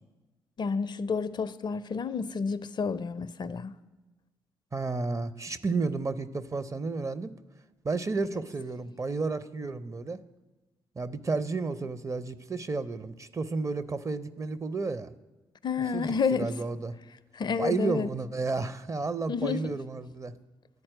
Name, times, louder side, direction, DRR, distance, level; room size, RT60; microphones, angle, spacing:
voice 1, 0.6-3.7 15.6-16.5 17.3-18.1 19.3-19.8, left 5 dB, 40° left, 0.4 m, -30 dB
voice 2, 4.7-7.3 7.8-10.2 11.0-15.1 15.9-16.9 17.6-20.3, right 3 dB, 25° right, 0.5 m, -32 dB
11.0 x 4.3 x 7.6 m
figure-of-eight pair, 40°, 12 cm